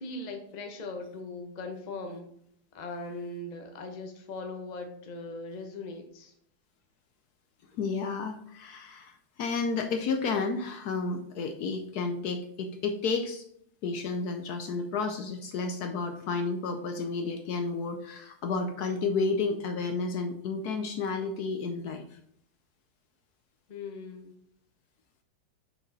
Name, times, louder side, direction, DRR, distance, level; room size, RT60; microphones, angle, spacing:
voice 1, 0.0-2.3 2.7-6.3 23.7-24.3, left 2 dB, 40° left, 4 dB, 0.6 m, -39 dB
voice 2, 7.8-13.4 13.8-22.0, left 4 dB, 65° left, 6 dB, 1.0 m, -31 dB
6.0 x 5.1 x 3.9 m, 0.68 s
omnidirectional pair, 2.0 m